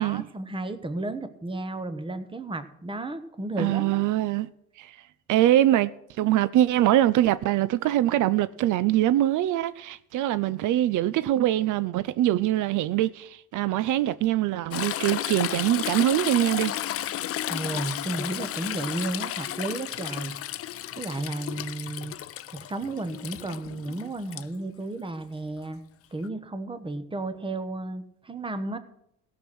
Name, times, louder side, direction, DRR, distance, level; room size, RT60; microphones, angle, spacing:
voice 1, 0.0-4.0 17.5-20.3 21.0-22.2 22.5-25.8 26.1-28.8, right 2 dB, 15° right, 1.1 m, -33 dB
voice 2, 3.6-4.5 4.8-5.0 5.3-5.9 6.2-16.7, right 13 dB, 80° right, 0.5 m, -23 dB
Toilet flush / Trickle dribble, 14.7-24.4 26.2-26.3, left 12 dB, 50° left, 0.4 m, -33 dB
16.0 x 6.0 x 6.1 m
cardioid pair, 90°, 30 cm